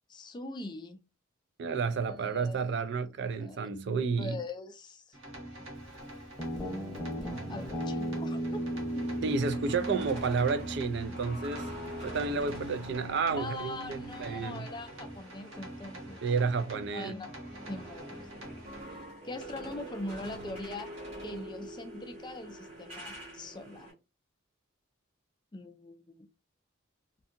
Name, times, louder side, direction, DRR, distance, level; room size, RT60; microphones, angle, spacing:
voice 1, 0.1-1.0 2.1-2.8 3.3-3.8 4.2-5.2 7.5-8.6 13.4-16.2 16.9-17.4 17.7-18.3 19.2-20.9 21.2-23.9 25.5-26.3, left 2 dB, 20° left, 0.4 m, -42 dB
voice 2, 1.6-4.4 9.2-11.7 12.0-14.6 16.2-17.1, right 5 dB, 55° right, 0.4 m, -31 dB
sound 1, 5.1-18.8, right 1 dB, 70° right, 1.0 m, -46 dB
Guitar, 6.4-12.9, right 1 dB, 5° left, 0.9 m, -36 dB
sound 2, 8.3-16.7 17.1-23.9, right 1 dB, 30° right, 1.3 m, -46 dB
2.6 x 2.6 x 2.5 m
head